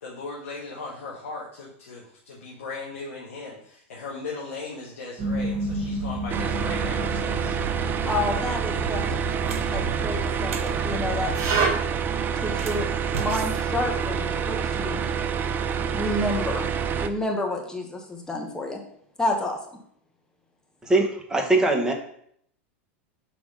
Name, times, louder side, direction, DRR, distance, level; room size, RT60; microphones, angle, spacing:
voice 1, 0.0-7.6, left 3 dB, 85° left, -4 dB, 1.3 m, -38 dB
sound 1, 5.2-11.7, right 3 dB, 45° right, 1.2 m, -30 dB
sound 2, 6.3-17.1, right 7 dB, 30° right, 0.5 m, -27 dB
voice 2, 8.0-9.0 9.7-11.3 12.4-12.9 13.2-15.0 15.9-16.7 17.0-18.8 19.2-19.6, left 2 dB, 10° left, 1 dB, 1.3 m, -29 dB
sound 3, 8.3-8.4 9.0-10.8 12.4-14.5, right 5 dB, 80° right, 0.8 m, -37 dB
voice 3, 20.8-21.9, right 2 dB, 10° right, 0 dB, 1.3 m, -21 dB
6.0 x 3.5 x 4.9 m, 0.66 s
hypercardioid pair, 105°, 7 cm